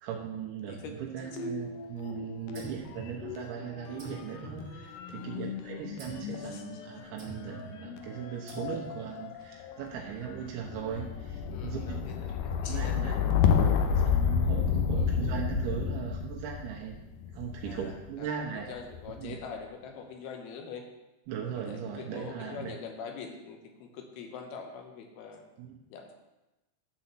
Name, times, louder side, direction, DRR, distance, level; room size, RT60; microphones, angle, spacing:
voice 1, 0.0-12.0 12.5-13.1 14.0-17.0 17.3-18.7 19.2-19.4 21.3-22.8 25.6-25.8, right 7 dB, 85° right, -1 dB, 3.4 m, -38 dB
sound 1, 1.3-2.7 2.9-18.0 18.7-19.3, left 7 dB, 90° left, 2.0 m, -31 dB
sound 2, 2.5-3.6 4.0-5.3 6.0-6.4 7.2-7.7 8.5-9.1, right 4 dB, 40° right, 2.1 m, -46 dB
voice 2, 6.4-6.8 11.5-13.2 14.9-15.1 17.6-18.3 18.5-20.8 21.5-25.4 25.9-26.1, left 6 dB, 70° left, 4 dB, 2.6 m, -44 dB
12.0 x 4.2 x 7.6 m, 1.0 s
omnidirectional pair, 5.2 m